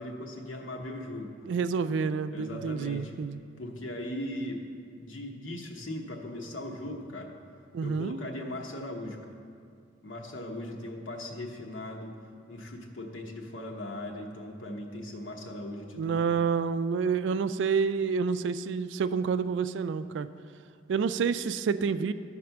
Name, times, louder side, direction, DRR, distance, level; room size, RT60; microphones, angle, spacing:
voice 1, 0.0-1.3 1.9-2.0 2.3-3.2 3.6-4.6 5.0-7.3 7.8-9.2 10.0-12.2 12.5-16.2, left 1 dB, 85° left, 1 dB, 1.0 m, -39 dB
voice 2, 1.5-3.4 7.7-8.2 16.0-20.3 20.9-22.1, right 5 dB, 70° right, 13 dB, 0.3 m, -28 dB
12.5 x 4.2 x 5.8 m, 2.3 s
head